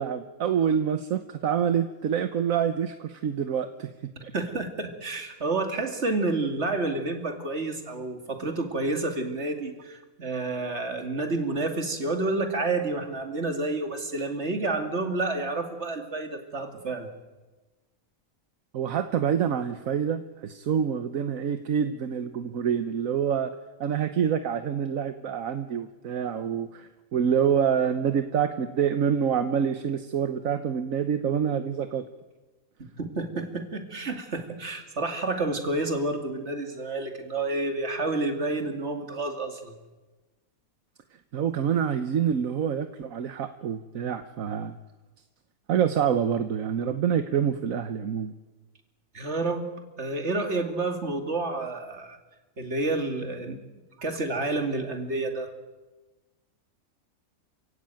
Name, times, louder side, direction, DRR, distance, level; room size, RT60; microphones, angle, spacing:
voice 1, 0.0-3.9 4.2-4.3 18.7-23.5 23.8-32.0 41.3-44.7 45.7-48.3, right 8 dB, 70° right, 9 dB, 1.4 m, -26 dB
voice 2, 4.3-17.1 33.0-39.7 49.1-49.6 50.0-52.2 52.6-53.6 54.0-55.5, right 2 dB, 50° right, 5 dB, 2.8 m, -29 dB
28.5 x 16.0 x 9.1 m, 1.2 s
omnidirectional pair, 1.5 m